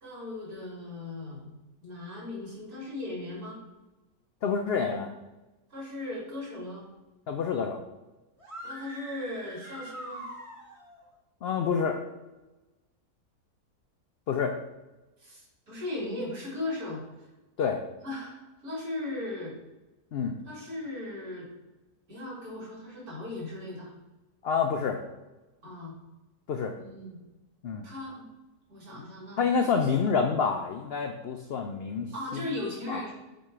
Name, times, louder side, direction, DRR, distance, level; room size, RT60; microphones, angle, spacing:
voice 1, 0.0-1.5 1.8-3.6 5.7-6.8 8.6-10.3 15.2-17.0 18.0-19.5 20.4-21.5 22.1-23.9 25.6-25.9 26.8-27.2 27.8-28.3 28.7-29.4 32.1-33.1, left 2 dB, 75° right, -5 dB, 3.0 m, -37 dB
voice 2, 4.4-5.1 7.3-7.8 11.4-12.0 14.3-14.5 17.6-17.8 20.1-20.4 24.4-25.0 26.5-26.7 27.6-27.8 29.4-32.1 32.3-32.4 32.9-33.0, left 6 dB, 90° left, 5 dB, 0.5 m, -27 dB
sound 1, 8.4-11.0, equal, 25° right, 1.2 m, -43 dB
7.8 x 3.0 x 4.8 m, 1.1 s
omnidirectional pair, 1.6 m